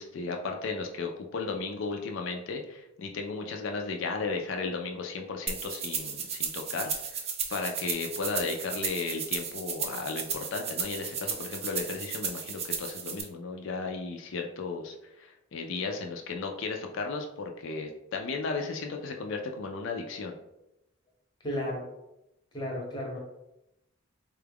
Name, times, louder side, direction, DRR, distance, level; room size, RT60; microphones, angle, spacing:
voice 1, 0.0-7.2 7.5-20.4, left 4 dB, 60° left, 3 dB, 0.4 m, -35 dB
sound 1, 5.5-13.2, right 6 dB, 30° right, 0.3 m, -34 dB
voice 2, 21.4-21.9 22.5-23.2, left 1 dB, 20° left, -2 dB, 0.7 m, -33 dB
3.9 x 2.3 x 3.4 m, 0.88 s
head